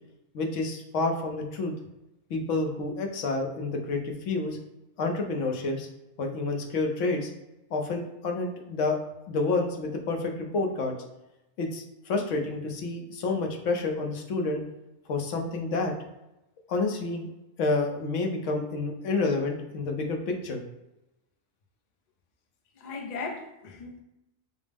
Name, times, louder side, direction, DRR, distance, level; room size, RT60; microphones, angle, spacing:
voice 1, 0.3-1.7 2.3-4.6 5.0-5.9 6.2-7.3 7.7-9.0 9.3-11.0 11.6-14.6 15.1-15.9 16.7-17.3 17.6-20.6, left 3 dB, 70° left, 2 dB, 1.0 m, -29 dB
voice 2, 22.8-24.0, left 4 dB, 55° left, 1 dB, 0.5 m, -37 dB
5.0 x 2.0 x 3.4 m, 0.94 s
omnidirectional pair, 1.4 m